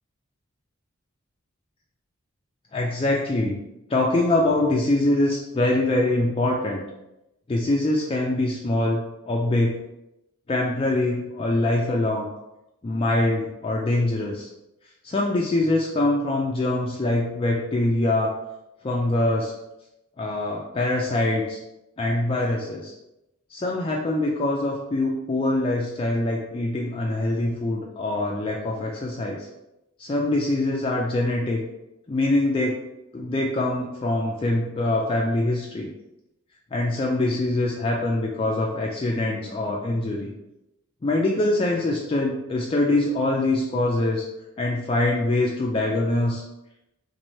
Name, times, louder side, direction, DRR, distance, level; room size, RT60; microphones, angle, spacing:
voice 1, 2.7-3.6 3.9-6.8 7.5-9.8 10.5-12.3 12.8-14.5 15.0-18.3 18.8-19.5 20.2-21.6 22.0-22.9 23.5-29.5 30.0-31.6 32.1-32.8 33.1-35.9 36.7-40.3 41.0-44.3 44.6-46.4, left 2 dB, 25° left, -2 dB, 0.3 m, -24 dB
3.1 x 2.6 x 4.1 m, 0.91 s
head